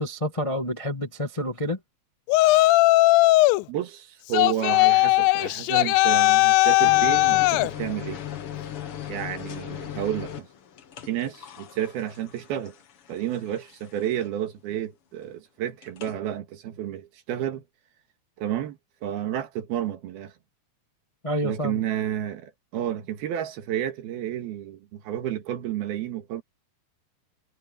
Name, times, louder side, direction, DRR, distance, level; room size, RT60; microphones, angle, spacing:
voice 1, 0.0-1.8 21.2-21.8, equal, 35° left, 0.5 m, -28 dB
Yell, 2.3-3.6 4.3-7.7, left 20 dB, 80° left, 2.2 m, -18 dB
voice 2, 3.7-8.2 9.1-10.5 11.0-12.8 13.1-17.6 18.4-20.3 21.4-26.4, right 11 dB, 80° right, 3.6 m, -31 dB
sound 1, 6.8-14.5 15.8-16.2, left 10 dB, 60° left, 1.5 m, -38 dB
omnidirectional pair, 4.4 m